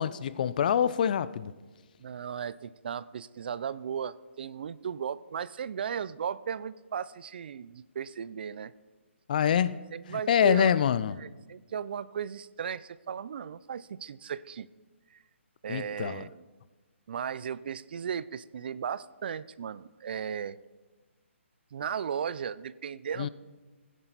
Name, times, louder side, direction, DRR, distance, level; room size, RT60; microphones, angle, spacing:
voice 1, 0.0-1.5 9.3-9.9 10.3-11.2 15.7-16.3 23.2-23.3, left 8 dB, 40° left, 0.4 m, -25 dB
voice 2, 2.0-8.7 9.9-10.7 11.2-14.7 15.1-15.2 15.6-16.4 17.1-20.6 21.7-23.3, right 7 dB, 50° right, 0.4 m, -36 dB
17.0 x 9.9 x 4.0 m
hypercardioid pair, 160°, 7 cm